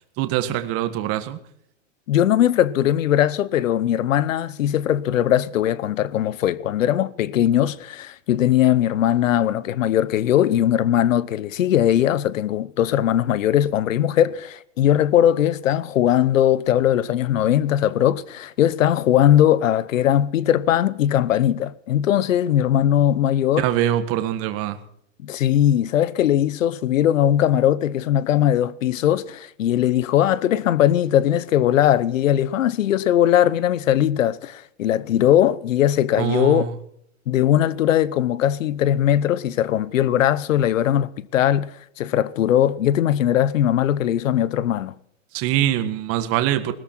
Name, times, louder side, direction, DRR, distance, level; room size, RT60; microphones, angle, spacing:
voice 1, 0.2-1.4 23.6-24.8 36.2-36.7 45.3-46.7, right 12 dB, 35° right, 1.7 m, -23 dB
voice 2, 2.1-23.7 25.2-36.6 37.3-44.9, left 11 dB, 85° left, 1.0 m, -19 dB
20.5 x 13.5 x 4.5 m
hypercardioid pair, 135°, 38 cm